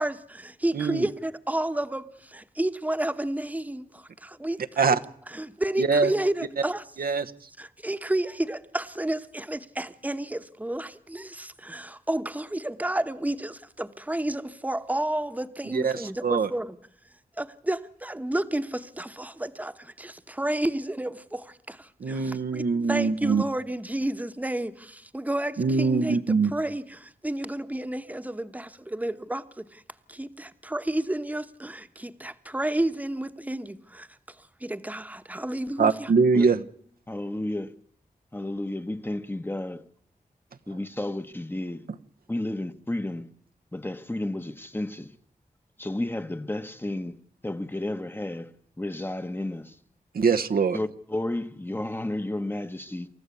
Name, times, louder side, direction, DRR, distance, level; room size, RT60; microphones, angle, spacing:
voice 1, 0.0-4.9 5.3-6.8 7.6-16.8 17.4-22.6 22.9-29.8 30.1-34.1 34.6-36.1, right 1 dB, 10° right, 1.1 m, -31 dB
voice 2, 0.7-1.1 4.8-5.0 5.8-6.1 7.0-7.5 15.7-16.5 22.0-23.4 25.6-26.5 35.8-36.6 50.1-50.8, right 5 dB, 90° right, 1.1 m, -23 dB
voice 3, 37.1-37.7 38.3-39.8 40.7-41.9 42.3-43.3 43.7-45.1 45.8-48.5 48.8-49.7 50.7-53.1, left 1 dB, 15° left, 1.0 m, -32 dB
28.5 x 14.5 x 8.4 m
wide cardioid pair, 115°, 15 cm